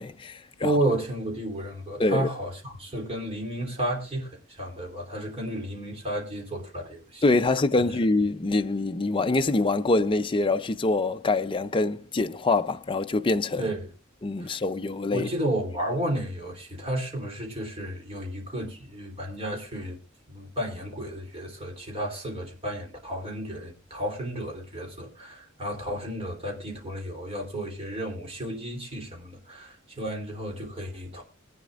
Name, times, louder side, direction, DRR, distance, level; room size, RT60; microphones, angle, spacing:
voice 1, 0.0-0.7 2.0-2.3 7.2-13.7 14.2-15.3, left 2 dB, 25° left, 0.5 m, -25 dB
voice 2, 0.6-7.2 13.6-13.9 14.4-14.6 15.1-20.0 20.3-31.2, right 1 dB, 30° right, 3.3 m, -32 dB
22.0 x 9.3 x 2.5 m
head